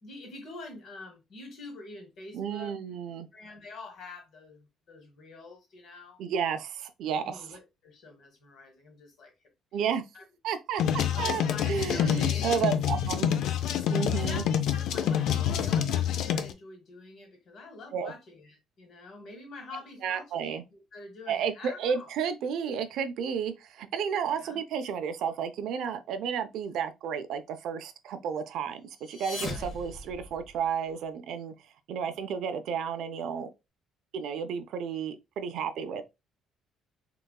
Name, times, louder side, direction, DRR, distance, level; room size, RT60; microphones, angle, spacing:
voice 1, 0.0-2.7 3.3-6.2 7.2-9.3 9.8-9.9 10.1-10.2 10.7-12.6 14.1-22.1 24.3-24.6 29.4-29.7, left 3 dB, 45° left, 1.1 m, -46 dB
voice 2, 2.3-3.3 6.2-7.5 9.7-10.1 10.4-10.8 11.2-13.3 13.9-14.4 17.9-18.1 20.0-20.6 21.3-33.5 34.1-36.0, right 7 dB, 60° right, 0.4 m, -32 dB
sound 1, 10.8-16.5, left 9 dB, 65° left, 0.4 m, -27 dB
sound 2, 28.9-30.8, left 2 dB, 25° left, 0.8 m, -39 dB
3.8 x 2.3 x 2.3 m
cardioid pair, 165°, 0 cm